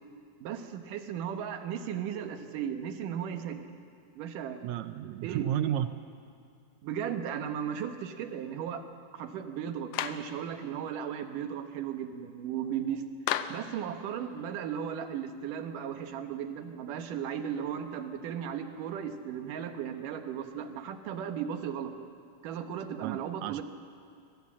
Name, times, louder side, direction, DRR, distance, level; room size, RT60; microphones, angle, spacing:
voice 1, 0.4-3.7 4.2-4.6 5.2-5.4 6.8-8.9 9.1-13.1 13.5-21.9 22.4-23.6, right 8 dB, 90° right, 7 dB, 2.8 m, -36 dB
voice 2, 4.6-5.9 23.0-23.6, right 11 dB, 75° right, 11 dB, 1.8 m, -32 dB
Clapping, 9.9-10.3 13.3-13.7, left 11 dB, 75° left, 1.5 m, -32 dB
23.0 x 19.5 x 7.5 m, 2.3 s
omnidirectional pair, 3.6 m